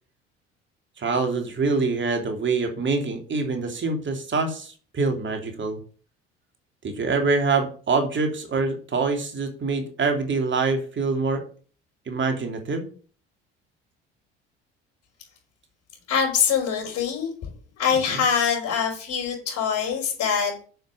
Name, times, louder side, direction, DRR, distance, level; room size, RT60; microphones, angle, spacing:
voice 1, 1.0-5.8 6.8-11.4 12.1-12.9 17.9-18.2, right 4 dB, 40° right, 4 dB, 2.9 m, -25 dB
voice 2, 16.1-17.5 17.8-20.6, left 7 dB, 55° left, -4 dB, 5.4 m, -24 dB
7.8 x 7.2 x 6.9 m, 0.41 s
hypercardioid pair, 60°, 31 cm